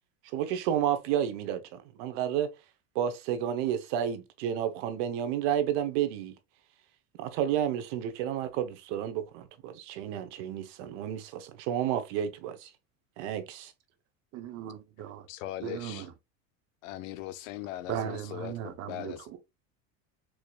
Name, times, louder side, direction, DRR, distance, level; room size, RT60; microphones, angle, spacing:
voice 1, 0.3-2.5 2.9-6.3 7.2-12.7 13.2-13.7, right 10 dB, 70° right, 0.9 m, -31 dB
voice 2, 14.3-15.3 15.6-16.1 17.9-19.4, right 9 dB, 40° right, 0.8 m, -37 dB
voice 3, 15.3-16.1 16.8-19.3, left 14 dB, 85° left, 0.7 m, -40 dB
4.7 x 2.8 x 2.3 m
supercardioid pair, 145°, 38 cm